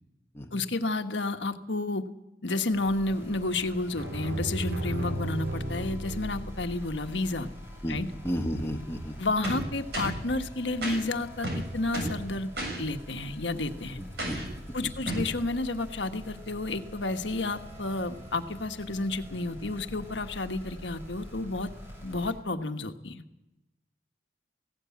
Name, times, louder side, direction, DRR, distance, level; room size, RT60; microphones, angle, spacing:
voice 1, 0.5-2.0 2.4-7.5 7.9-8.1 9.2-12.5 12.8-14.0 14.7-21.7 22.0-23.2, left 2 dB, 80° left, 7 dB, 1.4 m, -31 dB
sound 1, 2.7-22.3, equal, 15° right, 8.0 m, -46 dB
sound 2, 4.0-7.1, right 1 dB, 80° right, 5.2 m, -34 dB
voice 2, 7.8-9.1 14.0-14.9, equal, 15° left, 3 dB, 1.8 m, -34 dB
sound 3, 9.4-10.2 10.8-11.0 11.4-12.2 12.6-12.8 14.2-14.5 15.1-15.3, right 1 dB, 65° right, 7.2 m, -32 dB
18.5 x 17.0 x 8.5 m, 0.93 s
head